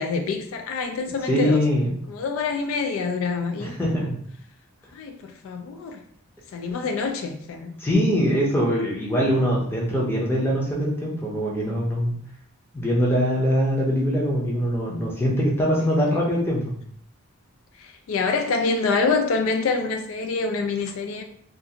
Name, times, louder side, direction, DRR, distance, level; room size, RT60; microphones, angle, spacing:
voice 1, 0.0-1.7 2.1-3.8 4.9-6.0 6.5-7.8 15.9-16.5 17.8-21.2, left 4 dB, 70° left, 5 dB, 0.3 m, -26 dB
voice 2, 1.2-1.9 3.6-4.1 7.8-12.1 12.7-16.7, equal, 10° left, -4 dB, 0.6 m, -22 dB
2.4 x 2.4 x 2.8 m, 0.64 s
head